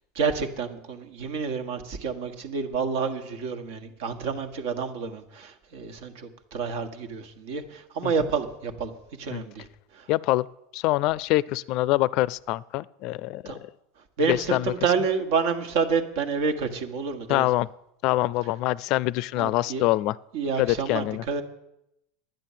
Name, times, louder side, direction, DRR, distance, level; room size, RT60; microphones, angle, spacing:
voice 1, 0.1-8.9 9.2-10.1 13.4-13.6 14.2-17.5 19.4-19.8 20.3-21.4, right 5 dB, 70° right, 7 dB, 1.6 m, -29 dB
voice 2, 10.1-10.5 10.7-13.7 14.3-14.7 17.3-17.7 18.0-20.1 20.6-21.2, left 18 dB, 55° left, 22 dB, 0.4 m, -25 dB
11.0 x 9.1 x 7.4 m, 0.83 s
hypercardioid pair, 95°, 0 cm